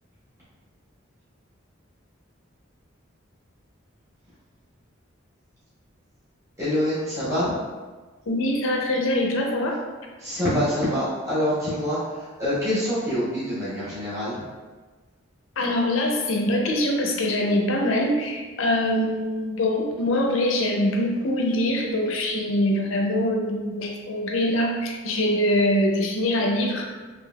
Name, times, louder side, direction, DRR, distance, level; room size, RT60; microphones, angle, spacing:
voice 1, 6.6-7.5 10.2-14.4, equal, 15° right, -13 dB, 1.3 m, -25 dB
voice 2, 8.3-9.8 15.6-26.9, left 1 dB, 75° left, 1 dB, 0.5 m, -23 dB
3.3 x 3.0 x 2.2 m, 1.3 s
head